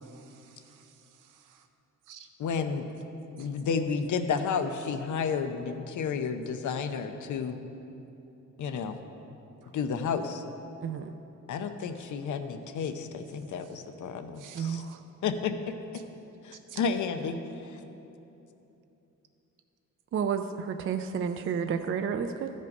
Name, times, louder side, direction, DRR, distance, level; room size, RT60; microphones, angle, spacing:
voice 1, 0.0-1.7 2.0-2.3 3.4-3.5 9.6-9.8 11.8-12.0 13.3-13.9 14.3-15.0 15.9-16.0 16.5-16.8, right 9 dB, 85° right, 6 dB, 0.8 m, -53 dB
voice 2, 2.4-2.9 3.4-7.6 8.6-9.0 9.7-10.4 11.5-14.8 15.2-15.5 16.5-17.4, left 6 dB, 70° left, 8 dB, 0.7 m, -31 dB
voice 3, 10.8-11.1 14.5-14.8 20.1-22.5, right 7 dB, 45° right, 7 dB, 0.4 m, -31 dB
13.5 x 5.3 x 5.3 m, 2.9 s
cardioid pair, 120°, 31 cm